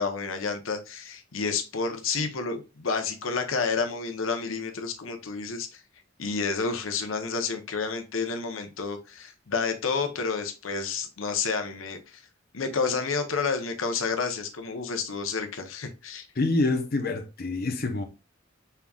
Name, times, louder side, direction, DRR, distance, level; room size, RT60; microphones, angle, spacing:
voice 1, 0.0-5.8 6.2-12.2 12.5-16.3, left 4 dB, 90° left, 0.8 m, -30 dB
voice 2, 16.4-18.0, left 2 dB, 50° left, 0.7 m, -26 dB
5.6 x 3.5 x 2.3 m
head